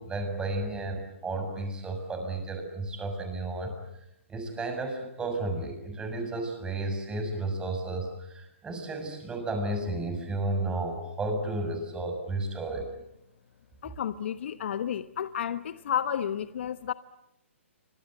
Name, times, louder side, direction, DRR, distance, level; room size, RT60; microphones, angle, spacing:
voice 1, 0.0-3.7 4.3-12.9, right 2 dB, 10° right, 6 dB, 6.9 m, -32 dB
voice 2, 13.8-16.9, left 9 dB, 60° left, 12 dB, 1.1 m, -31 dB
29.0 x 25.5 x 8.1 m, 0.82 s
hypercardioid pair, 130°, 7 cm